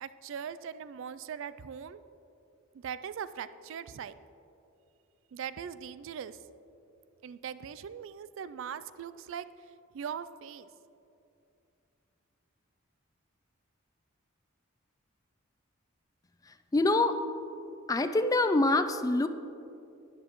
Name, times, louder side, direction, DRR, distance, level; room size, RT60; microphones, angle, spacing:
voice 1, 0.0-2.0 2.7-4.1 5.3-6.4 7.2-10.7, right 7 dB, 65° right, 14 dB, 0.3 m, -40 dB
voice 2, 16.5-17.2 17.9-19.3, left 2 dB, 15° left, 10 dB, 0.3 m, -25 dB
12.0 x 9.7 x 3.0 m, 2.7 s
head